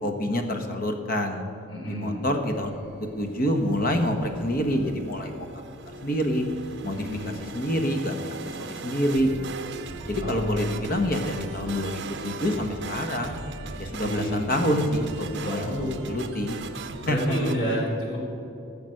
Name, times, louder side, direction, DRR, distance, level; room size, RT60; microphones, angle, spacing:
voice 1, 0.0-1.4 1.8-2.7 3.0-5.5 6.0-6.4 6.8-9.5 10.1-13.4 13.8-16.6 17.1-17.4, equal, 45° left, 4 dB, 1.2 m, -27 dB
voice 2, 1.7-2.3 6.9-7.4 10.2-10.6 14.0-14.5 15.4-15.9 17.0-18.2, equal, 65° left, -3 dB, 3.6 m, -30 dB
sound 1, 2.5-17.6, right 3 dB, 55° right, 0.8 m, -39 dB
15.5 x 7.1 x 6.5 m, 2.7 s
head